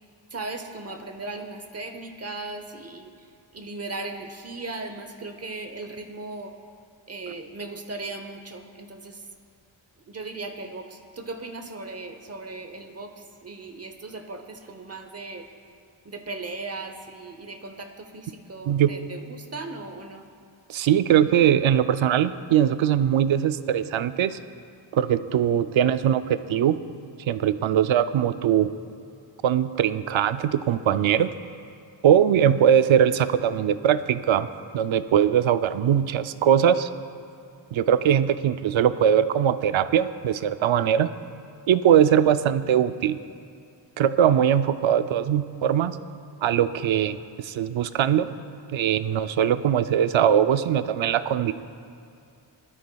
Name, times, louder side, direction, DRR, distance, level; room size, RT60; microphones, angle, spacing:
voice 1, 0.3-3.1 3.5-6.5 7.1-9.2 10.1-15.5 16.0-20.2, right 3 dB, 30° right, 6 dB, 0.8 m, -37 dB
voice 2, 20.7-24.4 24.9-26.8 27.3-28.7 29.4-31.3 32.0-34.5 34.7-36.9 37.7-41.1 41.7-43.2 44.0-46.0 46.4-48.3 48.7-51.5, right 9 dB, 75° right, 12 dB, 0.5 m, -21 dB
21.0 x 12.5 x 2.3 m, 2.5 s
wide cardioid pair, 120°, 47 cm